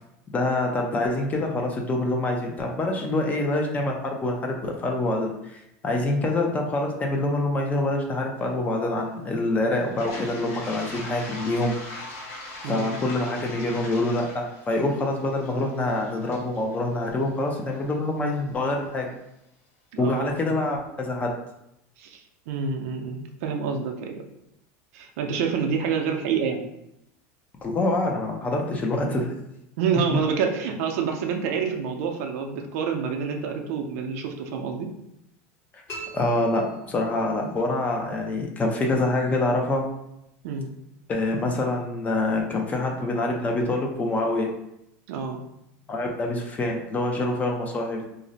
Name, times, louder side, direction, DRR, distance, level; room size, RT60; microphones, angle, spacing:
voice 1, 0.3-11.7 12.1-12.3 12.7-19.1 20.0-21.3 27.6-29.3 35.7-35.8 36.1-39.9 41.1-44.5 45.9-48.0, left 2 dB, 20° left, 1 dB, 0.4 m, -26 dB
Toilet flush, 9.8-17.8, left 1 dB, 75° left, 1.4 m, -40 dB
voice 2, 12.6-13.0 19.9-20.6 22.0-24.2 24.9-26.6 29.0-29.3 29.8-34.9 37.4-37.5 40.4-40.7 45.1-45.4, right 6 dB, 75° right, 4 dB, 0.5 m, -28 dB
sound 1, 35.9-37.4, right 1 dB, 35° left, 1.2 m, -41 dB
2.5 x 2.0 x 3.9 m, 0.82 s
supercardioid pair, 150°, 8 cm